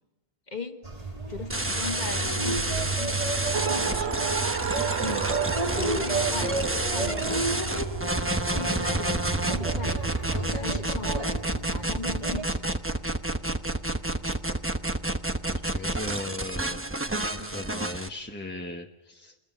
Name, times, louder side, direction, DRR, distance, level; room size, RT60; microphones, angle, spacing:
voice 1, 0.5-0.8 1.3-3.1 3.6-4.2 5.0-5.3 5.7-6.6 6.9-7.7 8.5-8.8 9.4-10.2 10.5-11.3 11.6-12.7, left 4 dB, 45° left, 6 dB, 1.8 m, -37 dB
sound 1, 0.8-12.4, right 3 dB, 35° right, 2.7 m, -32 dB
sound 2, 1.5-18.1, right 1 dB, 15° right, 1.0 m, -29 dB
Race car auto racing, 3.5-9.8, right 5 dB, 80° right, 1.4 m, -33 dB
voice 2, 5.0-5.3 15.4-16.8 17.4-19.5, left 1 dB, 10° left, 1 dB, 1.2 m, -38 dB
29.0 x 21.0 x 5.3 m, 1.1 s
omnidirectional pair, 1.1 m